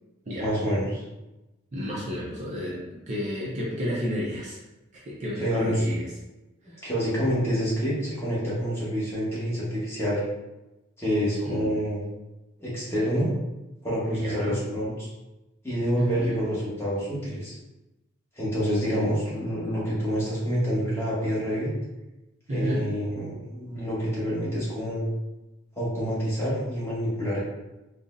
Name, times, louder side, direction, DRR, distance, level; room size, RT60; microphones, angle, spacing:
voice 1, 0.4-1.0 5.4-5.8 6.8-10.2 11.0-12.0 12.6-13.3 13.8-15.1 15.6-17.5 18.4-21.7 22.5-25.0 25.8-27.4, equal, 10° left, -8 dB, 1.0 m, -27 dB
voice 2, 1.7-4.6 5.1-6.0 6.7-6.8 11.4-11.7 14.1-14.6 16.0-16.4 18.9-19.0 22.5-22.9, equal, 35° right, -5 dB, 0.5 m, -31 dB
3.8 x 2.0 x 2.5 m, 1.0 s
head